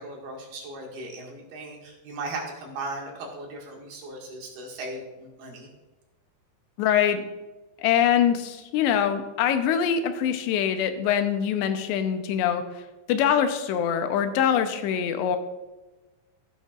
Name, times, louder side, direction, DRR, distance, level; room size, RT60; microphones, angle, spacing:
voice 1, 0.0-5.7, right 2 dB, 70° right, -1 dB, 3.7 m, -37 dB
voice 2, 6.8-7.2 7.8-12.8 13.1-15.4, left 9 dB, 90° left, 8 dB, 3.0 m, -24 dB
14.5 x 9.0 x 2.5 m, 1.1 s
omnidirectional pair, 4.8 m